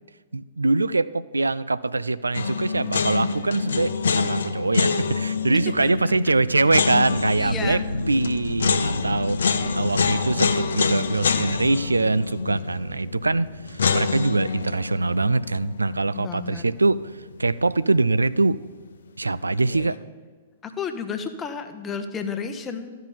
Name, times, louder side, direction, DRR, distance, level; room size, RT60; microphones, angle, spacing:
voice 1, 0.3-7.8 8.1-18.6 19.2-20.0, right 3 dB, 75° right, 16 dB, 0.3 m, -23 dB
sound 1, 2.3-17.4 17.6-17.7 19.5-20.0, left 5 dB, 65° left, 0.7 m, -27 dB
sound 2, 7.0-16.5 16.7-16.8 17.2-17.4, left 1 dB, 85° left, 0.3 m, -34 dB
voice 2, 7.4-7.9 16.1-16.7 20.6-23.0, left 5 dB, 20° left, 7 dB, 0.9 m, -32 dB
13.0 x 5.6 x 7.4 m, 1.4 s
figure-of-eight pair, 110°, 0 cm